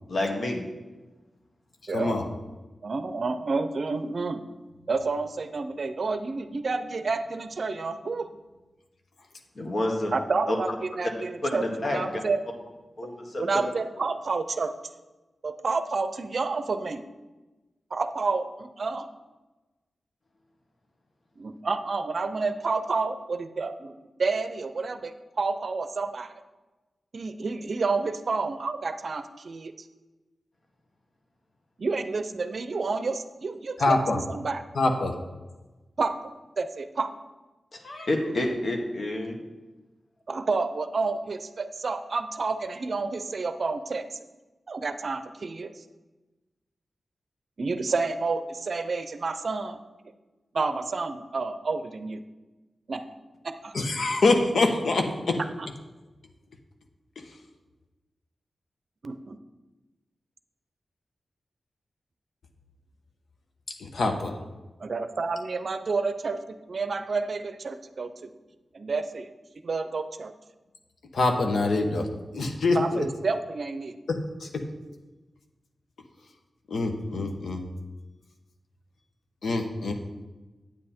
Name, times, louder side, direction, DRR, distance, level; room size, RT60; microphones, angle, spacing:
voice 1, 0.1-0.6 9.5-10.1 10.5-10.6 11.4-12.2 13.0-13.6 37.7-39.4, left 1 dB, 55° left, 2 dB, 1.6 m, -29 dB
voice 2, 1.9-2.3 33.8-34.2 34.7-35.2 53.7-55.4 63.8-64.4 71.1-72.1 72.3-73.1 74.1-74.6 76.7-77.7 79.4-79.9, left 2 dB, 80° left, 4 dB, 1.0 m, -25 dB
voice 3, 2.8-4.4 4.9-8.3 10.1-12.4 13.4-14.7 15.4-17.0 17.9-19.1 21.4-26.3 27.1-29.7 31.8-33.9 34.3-34.6 36.0-36.2 36.6-37.1 40.3-44.2 44.7-45.7 47.6-49.8 50.5-52.2 52.9-53.0 53.4-53.7 59.0-59.4 64.8-66.4 66.7-68.3 68.7-69.3 69.6-70.3 72.7-73.9, right 4 dB, 60° right, 10 dB, 0.5 m, -29 dB
8.8 x 7.6 x 4.3 m, 1.2 s
wide cardioid pair, 90°, 0 cm